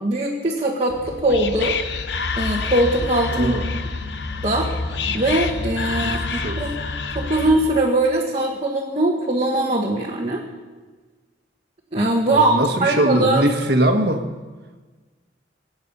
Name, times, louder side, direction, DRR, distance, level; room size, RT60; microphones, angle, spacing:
voice 1, 0.0-1.8 2.4-3.9 4.4-4.7 5.1-6.7 7.1-10.4 11.9-13.5, right 1 dB, 30° right, -2 dB, 1.5 m, -21 dB
Whispering, 0.9-7.8, left 4 dB, 60° left, 0.9 m, -27 dB
voice 2, 3.3-3.6 6.0-6.6 12.3-14.3, right 1 dB, 55° right, 5 dB, 1.6 m, -21 dB
25.0 x 8.9 x 5.5 m, 1.4 s
head